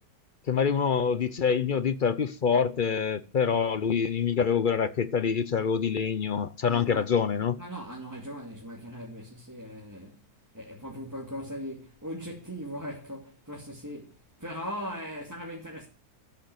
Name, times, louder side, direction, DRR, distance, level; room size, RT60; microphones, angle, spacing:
voice 1, 0.5-7.6, left 6 dB, 55° left, 0.5 m, -26 dB
voice 2, 6.7-7.0 7.6-10.2 10.5-15.9, equal, 10° right, 2.4 m, -39 dB
13.5 x 6.6 x 7.8 m
omnidirectional pair, 1.7 m